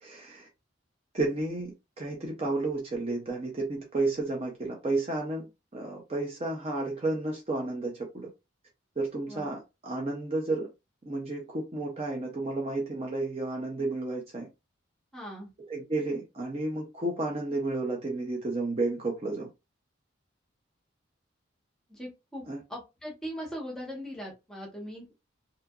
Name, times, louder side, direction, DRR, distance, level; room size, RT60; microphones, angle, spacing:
voice 1, 0.0-0.5 1.1-5.5 5.7-8.3 9.0-10.7 11.1-14.5 15.7-19.5 22.5-22.6, right 2 dB, 30° right, 0.5 m, -32 dB
voice 2, 15.1-15.5 21.9-22.4 22.7-25.1, equal, ahead, 1.0 m, -40 dB
2.7 x 2.4 x 2.3 m
head